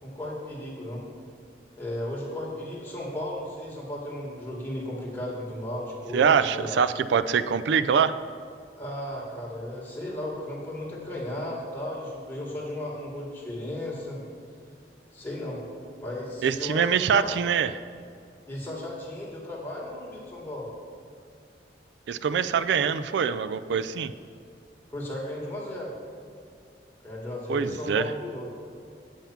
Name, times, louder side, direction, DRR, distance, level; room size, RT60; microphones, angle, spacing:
voice 1, 0.0-1.1 1.8-6.8 8.7-14.2 15.1-15.6 16.0-17.3 18.5-20.7 24.9-25.9 27.0-28.5, left 1 dB, 10° left, -5 dB, 2.0 m, -35 dB
voice 2, 6.1-8.1 16.4-17.7 22.1-24.1 27.5-28.1, right 7 dB, 90° right, 13 dB, 0.3 m, -24 dB
8.5 x 5.7 x 7.1 m, 2.4 s
head